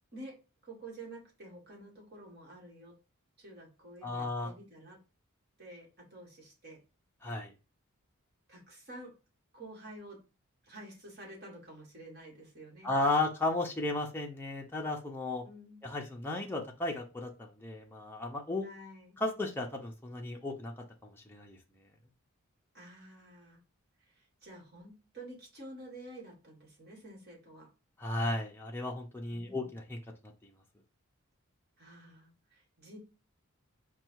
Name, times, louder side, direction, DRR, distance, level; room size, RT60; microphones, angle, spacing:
voice 1, 0.6-2.9 3.4-5.0 5.6-6.8 8.5-9.1 9.5-10.2 10.6-12.9 15.4-15.9 18.6-19.2 22.7-23.6 24.0-27.7 29.3-29.7 31.8-33.0, right 1 dB, 45° right, -1 dB, 1.8 m, -50 dB
voice 2, 4.0-4.5 7.2-7.5 12.8-15.4 15.8-18.7 19.2-20.7 21.0-21.6 28.0-30.0, left 2 dB, 10° left, -1 dB, 0.6 m, -34 dB
4.5 x 2.3 x 4.5 m, 0.29 s
head